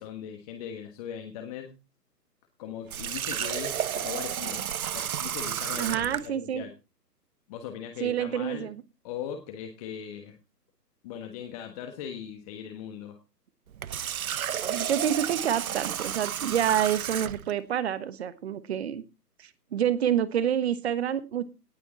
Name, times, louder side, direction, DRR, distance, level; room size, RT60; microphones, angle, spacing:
voice 1, 0.0-1.7 2.6-6.7 7.5-8.7 9.0-10.3 11.0-13.2, left 8 dB, 20° left, 4 dB, 1.4 m, -39 dB
Water tap faucet, 2.9-6.3 13.7-17.5, right 9 dB, 60° right, 0.7 m, -32 dB
voice 2, 5.8-6.6 8.0-8.8 14.6-19.0 19.4-21.5, right 9 dB, 40° right, 15 dB, 1.3 m, -28 dB
18.0 x 7.1 x 4.2 m, 0.28 s
figure-of-eight pair, 140°, 49 cm